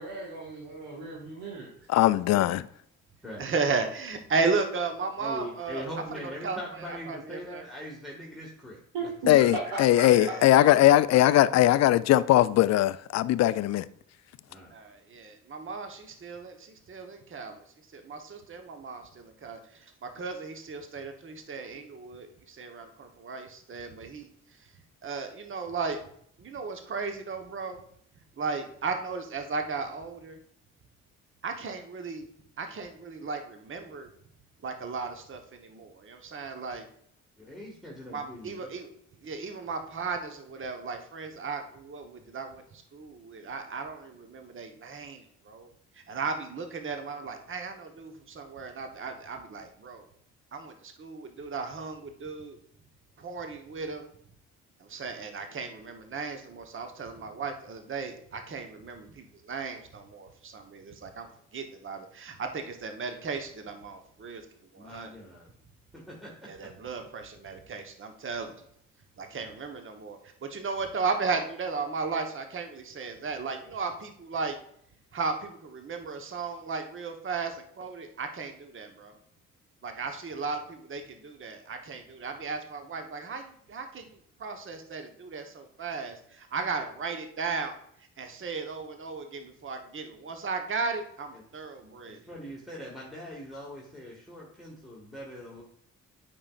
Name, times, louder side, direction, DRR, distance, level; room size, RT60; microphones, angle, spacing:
voice 1, 0.0-1.7 8.9-10.9, right 3 dB, 65° right, 1.8 m, -36 dB
voice 2, 1.9-2.6 9.3-13.8, left 14 dB, 45° left, 0.4 m, -20 dB
voice 3, 3.4-5.8 6.1-7.6 10.0-10.5 14.7-17.6 17.9-24.6 25.0-26.0 26.4-27.8 28.4-30.4 31.4-32.3 32.6-34.1 34.6-36.9 38.1-38.9 39.2-50.1 50.5-52.6 53.2-54.1 54.8-64.4 64.7-65.1 66.5-68.6 69.2-74.6 75.1-79.2 79.8-87.8 88.2-92.2, right 4 dB, 35° right, 1.0 m, -35 dB
voice 4, 5.2-9.1 14.5-14.7 37.4-38.7 64.8-65.5 65.9-66.5 91.3-91.4 92.0-95.6, equal, ahead, 1.6 m, -42 dB
8.5 x 5.3 x 2.4 m
hypercardioid pair, 45°, 37 cm